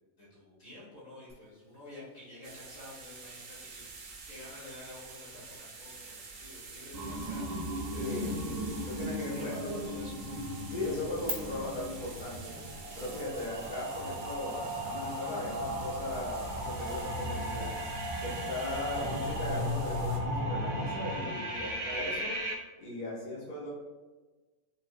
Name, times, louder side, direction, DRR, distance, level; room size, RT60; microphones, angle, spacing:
voice 1, 0.2-3.8 4.3-8.3 9.3-10.2, left 1 dB, 70° left, -8 dB, 1.9 m, -50 dB
sound 1, 1.3-11.3, right 2 dB, 20° right, 0.9 m, -52 dB
sound 2, 2.4-20.2, right 4 dB, 75° right, 1.1 m, -48 dB
sound 3, 6.9-22.5, equal, 55° right, 0.4 m, -36 dB
voice 2, 7.9-9.8 10.7-12.5 12.9-17.7 18.2-22.3 22.8-23.7, left 2 dB, 40° left, -6 dB, 0.9 m, -38 dB
5.3 x 2.7 x 2.4 m, 1.2 s
omnidirectional pair, 1.4 m